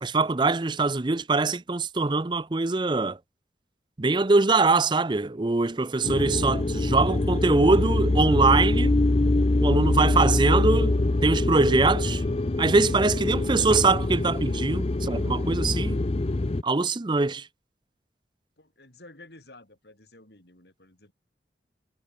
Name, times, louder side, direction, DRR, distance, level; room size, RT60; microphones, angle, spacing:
voice 1, 0.0-3.2 4.0-9.0 9.6-12.2 12.6-16.0 16.6-17.5, right 3 dB, 25° right, 0.6 m, -23 dB
sound 1, 6.0-16.6, left 2 dB, 35° left, 0.6 m, -24 dB
voice 2, 18.6-21.1, left 2 dB, 70° left, 5.0 m, -51 dB
head